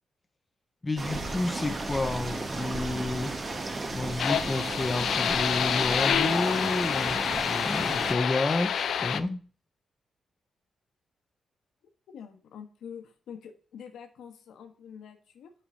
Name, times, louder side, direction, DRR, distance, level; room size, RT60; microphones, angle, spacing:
voice 1, 0.8-3.4 3.9-9.4, left 2 dB, 20° left, 0.5 m, -30 dB
sound 1, 1.0-8.1, right 2 dB, 30° right, 1.2 m, -34 dB
sound 2, 4.2-9.2, left 8 dB, 70° left, 0.5 m, -28 dB
voice 2, 12.1-15.5, left 7 dB, 85° left, 1.2 m, -46 dB
5.9 x 5.6 x 6.3 m
wide cardioid pair, 135°, 0 cm